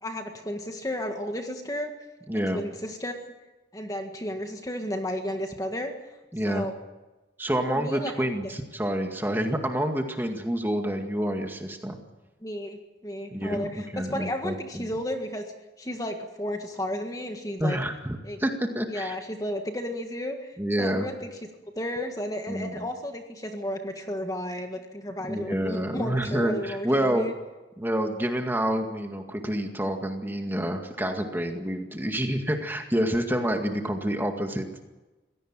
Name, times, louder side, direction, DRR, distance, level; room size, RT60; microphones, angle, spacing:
voice 1, 0.0-1.9 2.5-3.3 3.7-5.9 6.4-6.7 7.7-8.1 8.4-8.5 12.4-15.5 15.8-17.8 18.2-18.4 18.9-21.3 21.7-27.3, left 1 dB, 20° left, 4 dB, 1.7 m, -33 dB
voice 2, 2.3-2.6 6.3-6.7 7.4-12.0 13.3-14.9 17.6-19.2 20.6-21.1 22.5-22.9 25.2-27.3 27.8-34.7, right 1 dB, 10° right, 4 dB, 2.0 m, -28 dB
24.5 x 17.5 x 7.5 m, 1.1 s
head